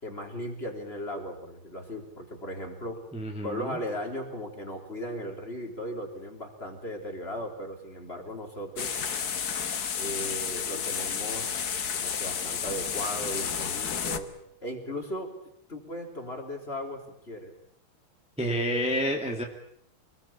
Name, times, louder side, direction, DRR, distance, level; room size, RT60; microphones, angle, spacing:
voice 1, 0.0-3.1 3.4-8.9 10.0-11.5 11.9-14.3 14.6-15.3 15.7-17.5, equal, 25° left, 3 dB, 3.8 m, -37 dB
voice 2, 3.1-3.8 18.4-19.4, equal, 5° right, 1 dB, 2.2 m, -29 dB
sound 1, 8.8-14.2, left 7 dB, 50° left, 1.7 m, -31 dB
25.5 x 20.0 x 8.7 m, 0.70 s
omnidirectional pair, 2.4 m